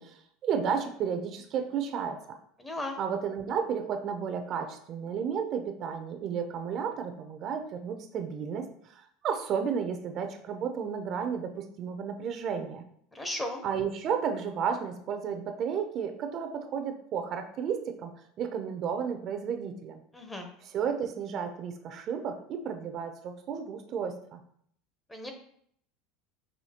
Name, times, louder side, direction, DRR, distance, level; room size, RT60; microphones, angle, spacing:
voice 1, 0.0-2.2 3.0-12.8 13.6-18.1 18.4-20.0 20.7-24.4, right 7 dB, 45° right, 6 dB, 0.5 m, -32 dB
voice 2, 2.6-3.0 13.1-13.6 20.1-20.5 25.1-25.3, left 1 dB, 15° left, 4 dB, 0.7 m, -35 dB
5.6 x 2.7 x 2.8 m, 0.65 s
supercardioid pair, 120°, 0 cm